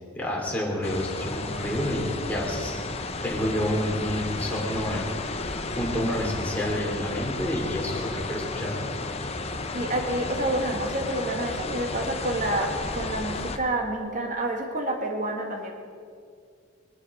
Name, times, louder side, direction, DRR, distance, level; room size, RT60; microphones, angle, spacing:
voice 1, 0.1-5.1 5.4-8.7, equal, 5° left, -3 dB, 3.3 m, -29 dB
sound 1, 0.8-13.6, left 3 dB, 30° left, 0.8 m, -33 dB
voice 2, 9.7-15.7, right 1 dB, 35° right, 2 dB, 2.0 m, -28 dB
21.5 x 12.5 x 5.1 m, 2.2 s
head